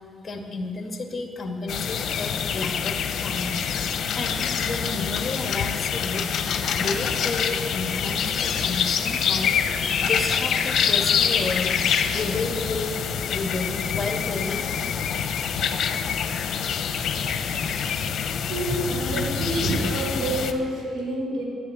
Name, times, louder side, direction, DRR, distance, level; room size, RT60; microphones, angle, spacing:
voice 1, 0.2-3.6 4.1-6.2 6.8-9.5 10.0-11.8 12.1-14.6, left 3 dB, 35° left, 3 dB, 2.2 m, -31 dB
sound 1, 1.7-20.5, left 7 dB, 65° left, 1.0 m, -26 dB
voice 2, 18.1-21.4, right 1 dB, 80° right, -2 dB, 4.7 m, -27 dB
11.0 x 10.5 x 9.3 m, 2.3 s
cardioid pair, 90°, 0 cm